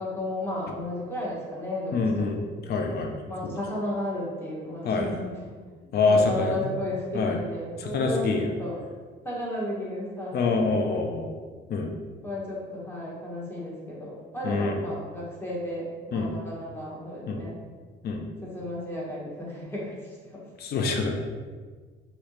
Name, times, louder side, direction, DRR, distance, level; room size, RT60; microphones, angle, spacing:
voice 1, 0.0-2.3 3.3-5.3 5.8-8.8 9.2-10.6 12.2-17.6 18.4-20.4, left 1 dB, 10° left, -6 dB, 1.1 m, -34 dB
voice 2, 1.9-2.4 2.7-3.1 3.4-3.5 4.8-5.2 5.9-6.6 7.1-7.4 7.8-8.5 10.3-11.3 11.7-11.9 14.4-14.8 16.1-16.3 17.3-17.4 18.0-18.2 20.6-21.2, left 3 dB, 55° left, 3 dB, 0.5 m, -25 dB
3.1 x 2.8 x 2.9 m, 1.5 s
cardioid pair, 90°, 20 cm